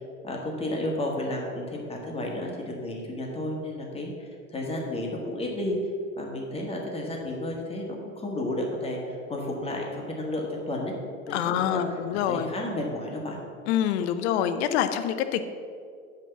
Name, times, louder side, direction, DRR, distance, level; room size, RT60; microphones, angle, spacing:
voice 1, 0.2-5.8 6.2-10.9 11.3-11.8 12.3-13.4, left 1 dB, 15° left, -1 dB, 1.7 m, -32 dB
voice 2, 11.3-12.5 13.7-15.4, left 10 dB, 50° left, 10 dB, 0.7 m, -26 dB
7.7 x 5.2 x 6.7 m, 2.2 s
figure-of-eight pair, 85°, 41 cm